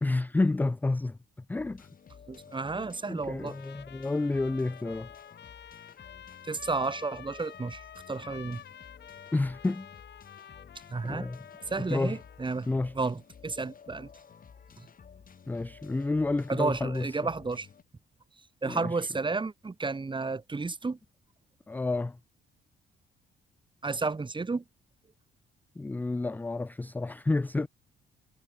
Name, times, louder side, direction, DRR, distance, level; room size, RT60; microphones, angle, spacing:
voice 1, 0.0-1.2 1.5-1.9 2.8-5.1 9.3-9.9 11.0-11.4 11.8-12.2 12.7-12.9 15.5-17.1 18.6-19.1 21.7-22.2 25.8-27.7, left 2 dB, 10° left, 0.3 m, -30 dB
sound 1, 1.6-17.8, left 6 dB, 45° left, 3.0 m, -53 dB
voice 2, 2.3-3.6 6.4-8.6 10.9-11.3 11.7-12.7 12.9-14.1 16.5-17.7 18.6-21.0 23.8-24.6, right 3 dB, 25° right, 2.4 m, -32 dB
Trumpet, 3.4-12.5, left 9 dB, 60° left, 3.6 m, -50 dB
cardioid pair, 90°, 20 cm